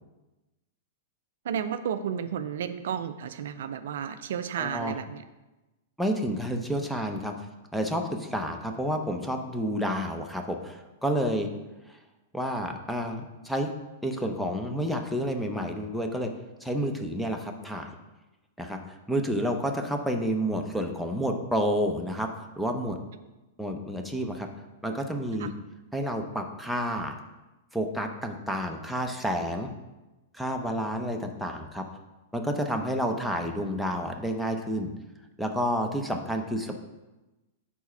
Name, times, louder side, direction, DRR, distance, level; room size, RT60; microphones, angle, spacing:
voice 1, 1.4-5.2 25.4-25.5, right 8 dB, 70° right, 11 dB, 0.3 m, -32 dB
voice 2, 4.6-5.0 6.0-7.3 7.7-11.5 12.3-13.7 14.0-16.3 16.6-18.0 18.6-23.0 23.6-24.5 24.8-25.5 25.9-27.1 27.7-29.7 30.3-31.8 32.3-34.9 35.4-36.8, equal, ahead, 3 dB, 0.7 m, -30 dB
4.6 x 4.2 x 5.6 m, 1.1 s
hypercardioid pair, 115°, 0 cm